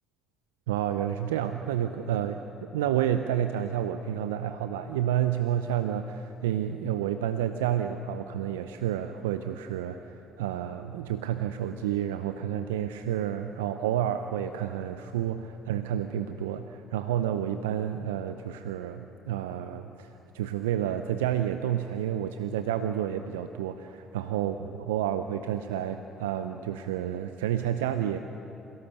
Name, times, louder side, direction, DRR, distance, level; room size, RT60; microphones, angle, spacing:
voice 1, 0.7-28.2, right 10 dB, 80° right, 9 dB, 0.6 m, -30 dB
27.0 x 17.5 x 6.9 m, 3.0 s
hypercardioid pair, 50°, 0 cm